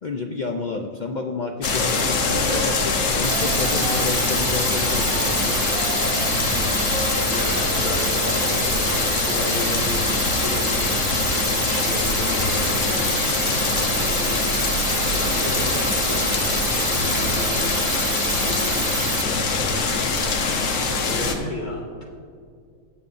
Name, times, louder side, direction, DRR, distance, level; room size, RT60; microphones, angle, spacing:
voice 1, 0.0-5.8, left 4 dB, 85° left, 3 dB, 0.4 m, -30 dB
sound 1, 1.6-21.3, left 4 dB, 65° left, 1.2 m, -23 dB
Wind instrument woodwind instrument, 1.8-4.6 5.0-8.1, right 2 dB, 40° right, 1.1 m, -35 dB
sound 2, 3.2-19.2, right 9 dB, 70° right, 0.5 m, -29 dB
voice 2, 7.3-13.0 13.4-14.4 14.7-18.8 19.2-20.2 21.0-22.1, left 2 dB, 35° left, -3 dB, 1.8 m, -34 dB
17.0 x 7.0 x 2.5 m, 2.2 s
omnidirectional pair, 1.5 m